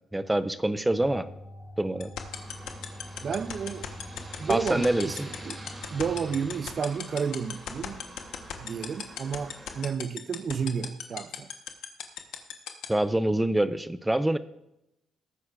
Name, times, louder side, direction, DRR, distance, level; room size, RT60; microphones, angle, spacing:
voice 1, 0.1-1.3 1.8-2.1 4.5-5.3 12.9-14.4, right 1 dB, 10° right, 0.6 m, -25 dB
sound 1, 0.9-6.5, left 1 dB, 45° left, 3.2 m, -45 dB
sound 2, 2.0-12.9, left 10 dB, 85° left, 1.2 m, -34 dB
Aircraft, 2.3-9.9, right 1 dB, 25° right, 2.9 m, -46 dB
voice 2, 3.2-3.9 4.4-5.6 5.9-8.0 8.6-11.5, right 6 dB, 50° right, 0.6 m, -31 dB
18.5 x 9.4 x 2.5 m
cardioid pair, 90°, 0 cm